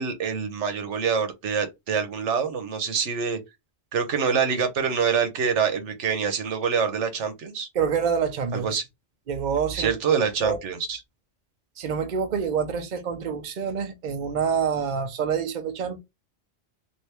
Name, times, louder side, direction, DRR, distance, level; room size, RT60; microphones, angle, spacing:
voice 1, 0.0-3.4 3.9-7.7 8.5-8.8 9.7-11.0, right 6 dB, 90° right, 1.1 m, -25 dB
voice 2, 7.7-8.8 9.3-10.0 10.4-10.6 11.8-16.0, right 6 dB, 50° right, 0.7 m, -27 dB
3.3 x 2.6 x 2.9 m
omnidirectional pair, 1.2 m